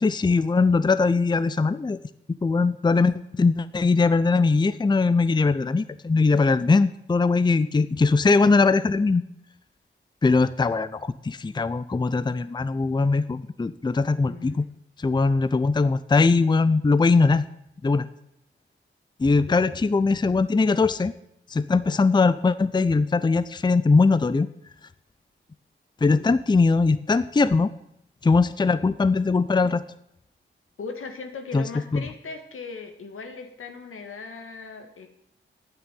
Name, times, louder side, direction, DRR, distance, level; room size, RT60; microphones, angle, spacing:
voice 1, 0.0-2.0 2.4-9.2 10.2-14.6 15.0-17.4 17.8-18.1 19.2-21.1 21.5-24.5 26.0-27.7 28.2-29.8 31.5-31.6 31.9-32.0, left 4 dB, 20° left, 15 dB, 0.5 m, -21 dB
voice 2, 14.2-14.6 19.5-19.8 26.0-26.4 30.8-35.1, left 4 dB, 85° left, 6 dB, 2.0 m, -39 dB
8.9 x 8.9 x 9.3 m, 0.76 s
wide cardioid pair, 95°, 21 cm